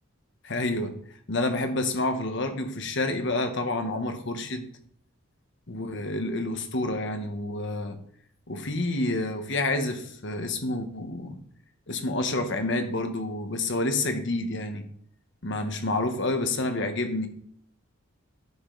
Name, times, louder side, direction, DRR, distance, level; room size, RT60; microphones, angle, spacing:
voice 1, 0.4-0.9 1.3-4.7 5.7-8.0 8.5-11.4 11.9-14.8 15.4-17.3, left 2 dB, 55° left, 7 dB, 1.1 m, -28 dB
11.0 x 5.1 x 3.9 m, 0.63 s
head